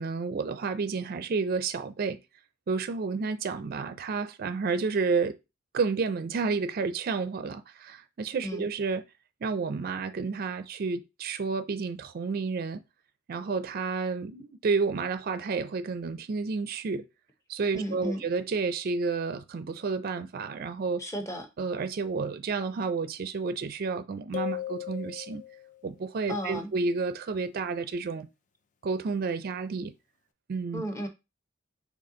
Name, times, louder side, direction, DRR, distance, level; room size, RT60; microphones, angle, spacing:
voice 1, 0.0-2.2 2.7-5.4 5.7-9.0 9.4-12.8 13.3-17.1 17.5-21.0 21.6-25.4 25.8-28.3 28.8-29.9 30.5-30.8, right 4 dB, 50° right, 0.4 m, -30 dB
voice 2, 17.8-18.2 21.0-21.5 26.3-26.7 30.7-31.1, equal, 15° left, 0.8 m, -33 dB
sound 1, 24.3-25.8, left 12 dB, 40° left, 0.4 m, -36 dB
4.2 x 3.0 x 3.8 m
head